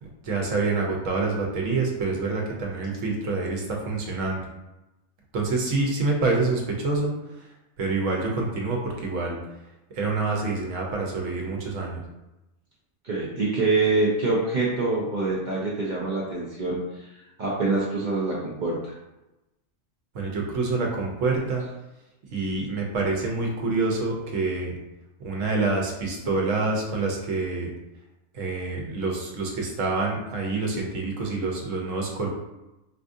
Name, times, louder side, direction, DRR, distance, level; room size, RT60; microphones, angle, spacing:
voice 1, 0.0-4.4 5.3-7.5 7.8-9.4 9.9-12.0 20.1-21.7 22.3-24.7 25.2-27.7 28.3-32.3, right 3 dB, 75° right, 0 dB, 1.1 m, -27 dB
voice 2, 13.0-17.1 17.4-18.9, right 3 dB, 50° right, -5 dB, 0.6 m, -25 dB
4.3 x 2.4 x 2.6 m, 0.98 s
omnidirectional pair, 1.4 m